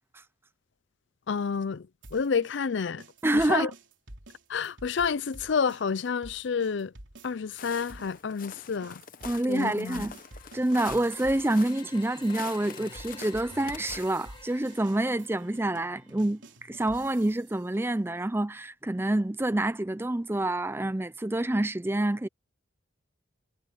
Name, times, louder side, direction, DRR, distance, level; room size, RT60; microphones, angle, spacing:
voice 1, 1.3-3.0 3.3-3.7 4.5-6.9 7.2-9.0 9.5-10.1, left 6 dB, 65° left, 0.5 m, -29 dB
sound 1, 2.0-7.6 7.9-17.6, right 1 dB, 70° right, 3.6 m, -50 dB
voice 2, 3.2-3.7 9.2-10.2 10.5-16.4 16.7-22.3, right 1 dB, 10° right, 0.4 m, -27 dB
Walk footsteps, 7.6-14.0, left 6 dB, 45° left, 0.9 m, -45 dB
sound 2, 10.2-16.2, left 4 dB, 25° left, 2.6 m, -51 dB
head